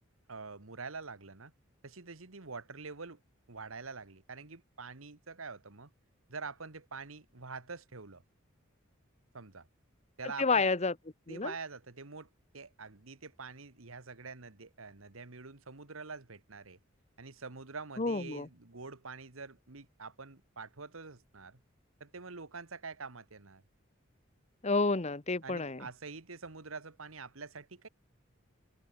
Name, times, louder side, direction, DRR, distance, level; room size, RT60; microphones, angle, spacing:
voice 1, 0.3-1.5 1.8-3.2 3.5-5.9 6.3-8.2 9.3-9.7 10.2-10.6 11.3-16.8 17.2-21.6 22.0-23.6 25.4-27.9, right 4 dB, 85° right, 1.7 m, -46 dB
voice 2, 10.4-10.9 11.3-11.5 18.0-18.5 24.6-25.9, left 3 dB, 35° left, 1.1 m, -29 dB
open air
head